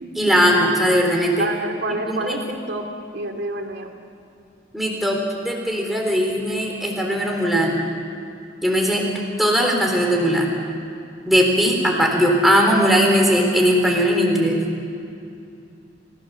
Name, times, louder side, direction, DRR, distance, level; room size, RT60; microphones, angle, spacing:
voice 1, 0.2-1.5 2.1-2.3 4.7-5.2 5.4-7.8 8.6-9.0 9.4-10.5 11.2-14.6, equal, ahead, -1 dB, 3.6 m, -19 dB
voice 2, 1.4-2.9 3.1-3.9, right 2 dB, 70° right, 3 dB, 2.4 m, -28 dB
29.5 x 16.5 x 7.0 m, 2.6 s
head